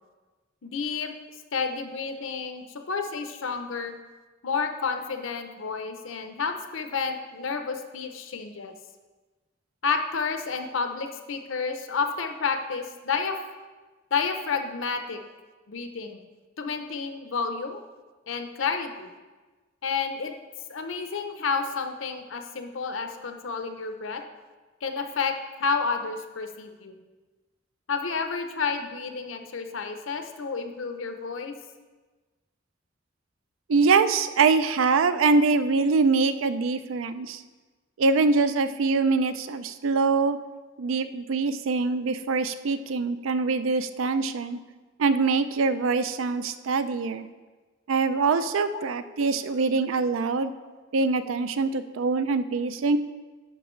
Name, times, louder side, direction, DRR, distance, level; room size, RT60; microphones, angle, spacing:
voice 1, 0.6-1.1 1.5-3.9 4.4-8.7 9.8-13.4 14.1-15.2 15.7-16.3 16.6-17.8 18.3-19.1 19.8-20.3 20.7-24.2 24.8-26.9 27.9-31.5 44.2-44.3 46.3-46.5 48.7-48.8, left 5 dB, 75° left, 6 dB, 0.7 m, -30 dB
voice 2, 33.7-37.4 38.0-40.4 40.8-44.6 45.0-47.3 47.9-50.5 50.9-53.0, right 4 dB, 85° right, 12 dB, 0.4 m, -24 dB
10.5 x 5.3 x 3.1 m, 1.3 s
head